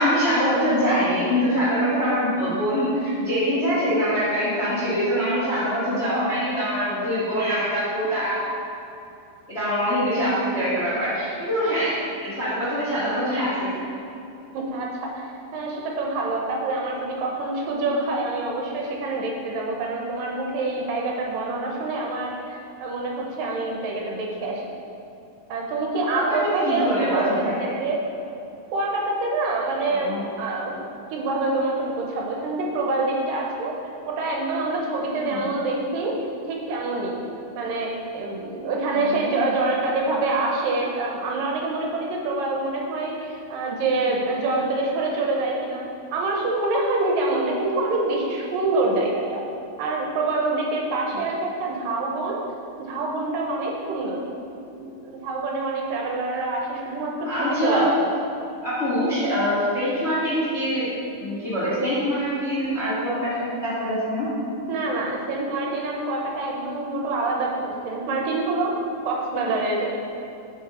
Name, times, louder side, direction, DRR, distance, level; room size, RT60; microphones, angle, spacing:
voice 1, 0.0-8.4 9.5-11.9 12.2-13.7 26.1-26.4 26.6-27.7 29.9-30.3 35.2-35.5 38.9-39.2 51.1-51.2 57.2-57.8 58.6-60.9 61.2-64.3, equal, 30° left, -10 dB, 1.3 m, -24 dB
voice 2, 14.5-24.6 25.5-27.4 27.8-28.0 28.7-30.7 31.1-33.7 34.1-36.2 36.5-37.2 37.5-45.8 46.1-49.4 49.8-52.4 52.8-54.2 54.7-57.9 64.7-68.7 69.0-69.9, right 2 dB, 75° right, -1 dB, 2.4 m, -26 dB
7.9 x 5.5 x 4.2 m, 2.7 s
omnidirectional pair, 4.1 m